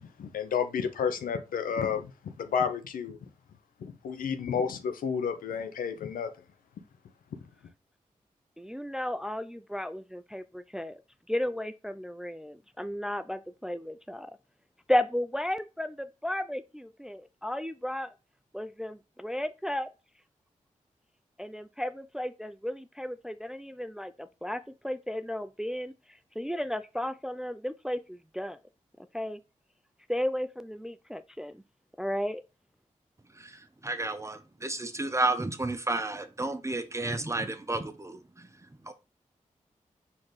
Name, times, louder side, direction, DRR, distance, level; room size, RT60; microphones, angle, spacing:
voice 1, 0.0-3.2 3.8-6.3, left 7 dB, 85° left, 0.6 m, -31 dB
voice 2, 8.6-11.0 11.3-14.3 14.9-18.1 18.5-19.9 21.4-25.9 26.4-28.6 29.1-29.4 30.1-31.5 32.0-32.4, left 1 dB, 5° right, 0.4 m, -34 dB
voice 3, 33.3-38.5 38.8-38.9, right 2 dB, 20° right, 0.8 m, -32 dB
4.4 x 3.7 x 3.2 m
cardioid pair, 40°, 14 cm